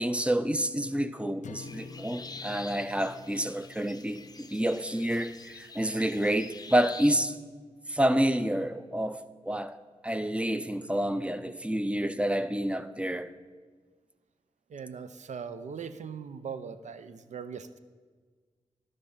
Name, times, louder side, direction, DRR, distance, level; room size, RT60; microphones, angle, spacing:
voice 1, 0.0-7.4 7.9-9.2 9.4-9.8 10.0-13.3, right 1 dB, 10° right, 0.6 m, -28 dB
sound 1, 1.4-5.8, left 5 dB, 85° left, 0.4 m, -49 dB
sound 2, 1.6-7.2, left 4 dB, 35° left, 0.6 m, -46 dB
voice 2, 14.7-17.8, right 6 dB, 75° right, 0.6 m, -40 dB
12.0 x 5.3 x 5.8 m
cardioid pair, 60°, 12 cm